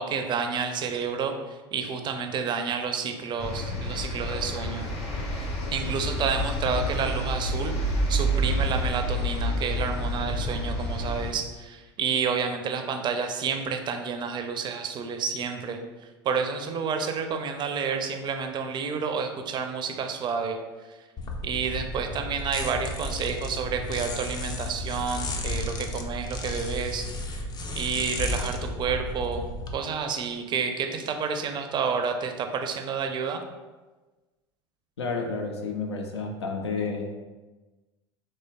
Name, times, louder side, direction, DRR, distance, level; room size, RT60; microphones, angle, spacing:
voice 1, 0.0-4.9 5.7-20.6 21.4-27.5 27.7-29.5 29.7-33.4, right 6 dB, 35° right, 6 dB, 0.4 m, -30 dB
sound 1, 3.4-11.3, equal, 45° left, 0.9 m, -29 dB
sound 2, 21.2-29.7, left 1 dB, 30° left, 0.4 m, -33 dB
voice 2, 35.0-37.2, left 4 dB, 85° left, 3 dB, 0.5 m, -31 dB
4.0 x 3.1 x 2.2 m, 1.2 s
hypercardioid pair, 80°, 14 cm